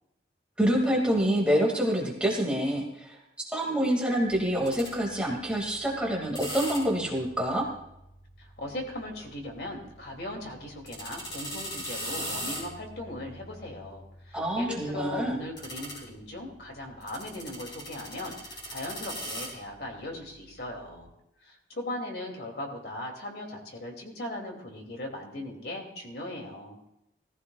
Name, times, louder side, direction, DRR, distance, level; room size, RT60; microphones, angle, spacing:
voice 1, 0.6-3.2 3.5-7.7 14.3-15.4, equal, 5° right, -2 dB, 2.2 m, -26 dB
sound 1, 4.2-21.0, equal, 25° left, 6.0 m, -42 dB
voice 2, 8.4-21.1 21.4-26.8, left 1 dB, 65° left, 1 dB, 2.7 m, -38 dB
19.0 x 15.0 x 2.4 m, 0.83 s
head